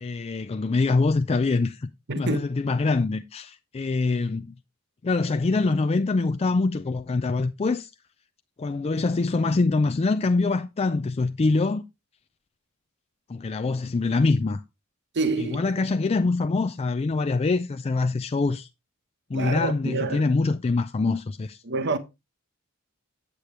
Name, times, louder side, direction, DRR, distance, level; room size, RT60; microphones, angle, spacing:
voice 1, 0.0-1.9 2.2-4.5 5.0-7.9 8.6-11.8 13.3-14.6 15.5-18.7 19.3-21.6, left 3 dB, 30° left, 0.4 m, -24 dB
voice 2, 2.1-2.4 15.1-15.7 19.3-20.3 21.6-22.0, right 3 dB, 55° right, 1.0 m, -27 dB
8.3 x 8.3 x 3.1 m
head